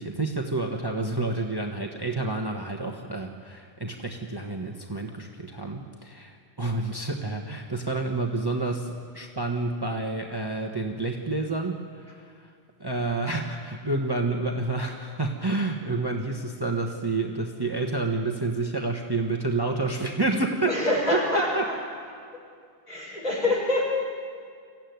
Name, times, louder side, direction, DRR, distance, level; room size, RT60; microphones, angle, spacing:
voice 1, 0.0-12.5 12.8-20.7 21.5-21.6, right 2 dB, 20° right, 2 dB, 1.3 m, -29 dB
voice 2, 20.7-22.4 22.9-23.9, left 1 dB, 40° left, -3 dB, 6.3 m, -26 dB
25.0 x 15.0 x 9.5 m, 2.1 s
omnidirectional pair, 1.1 m